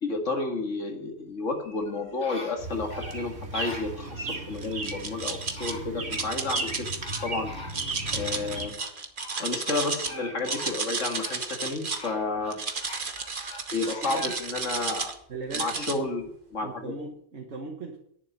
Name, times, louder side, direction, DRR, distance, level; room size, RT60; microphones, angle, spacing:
voice 1, 0.0-6.9 7.2-7.5 8.1-8.7 9.4-12.6 13.7-15.1 15.5-16.9, left 3 dB, 80° left, 3 dB, 2.4 m, -31 dB
sound 1, 1.5-4.4 5.2-5.3 5.6-6.7 7.0-8.2 8.8-15.0 15.5-15.6, left 1 dB, 10° right, 4.7 m, -44 dB
sound 2, 2.6-8.7, right 2 dB, 85° right, 2.3 m, -36 dB
sound 3, 4.6-5.7 6.1-7.2 7.7-10.1 10.4-12.1 12.5-15.1 15.5-16.0, right 4 dB, 45° right, 1.3 m, -32 dB
voice 2, 14.0-14.4 15.3-16.1 16.6-18.0, right 3 dB, 65° right, 1 dB, 1.8 m, -38 dB
10.5 x 7.3 x 9.3 m, 0.68 s
omnidirectional pair, 1.2 m